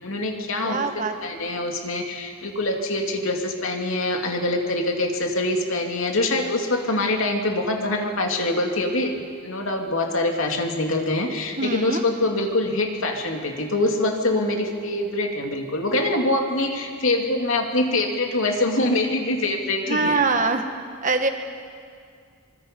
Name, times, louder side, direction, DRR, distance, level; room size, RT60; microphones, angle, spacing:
voice 1, 0.0-0.8 1.2-20.2, left 2 dB, 75° left, 2 dB, 2.6 m, -24 dB
voice 2, 0.6-1.1 11.6-12.0 19.9-20.6 21.0-21.3, right 3 dB, 40° right, 6 dB, 1.4 m, -23 dB
25.5 x 24.0 x 5.3 m, 2.2 s
head